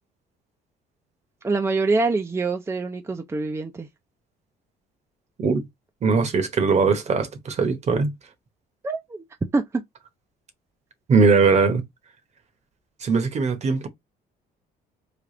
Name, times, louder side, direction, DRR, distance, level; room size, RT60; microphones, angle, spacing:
voice 1, 1.4-3.9 8.8-9.2 9.5-9.6, right 3 dB, 15° right, 0.5 m, -25 dB
voice 2, 6.0-8.1 11.1-11.8 13.0-13.9, right 4 dB, 40° right, 1.0 m, -20 dB
3.4 x 2.4 x 3.7 m
cardioid pair, 110°, 17 cm